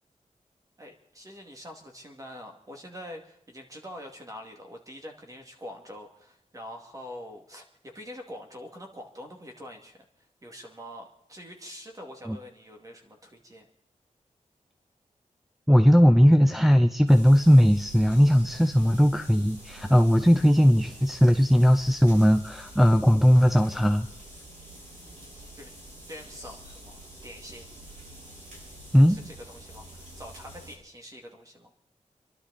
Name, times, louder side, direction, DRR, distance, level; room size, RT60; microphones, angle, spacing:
voice 1, 0.8-10.0 10.4-13.7 24.9-25.0 25.6-25.7 26.1-27.7 29.1-31.7, equal, 25° right, 2 dB, 2.4 m, -44 dB
voice 2, 15.7-24.1 28.9-29.2, equal, ahead, 6 dB, 0.5 m, -19 dB
sound 1, 17.1-30.7, right 1 dB, 75° right, 6.5 m, -46 dB
29.0 x 11.5 x 4.2 m, 0.73 s
wide cardioid pair, 160°, 13 cm